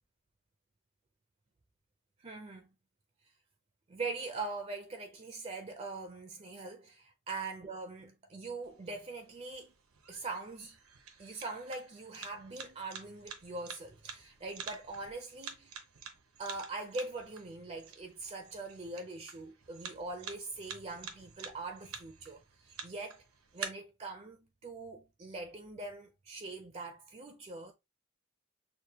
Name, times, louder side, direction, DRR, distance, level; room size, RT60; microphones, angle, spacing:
voice 1, 2.2-2.7 3.9-9.7 10.1-10.8 11.2-15.7 16.4-23.2 23.5-27.7, right 3 dB, 30° right, 0.5 m, -42 dB
sound 1, 8.6-23.6, right 6 dB, 80° right, 0.9 m, -49 dB
6.5 x 2.2 x 2.8 m
head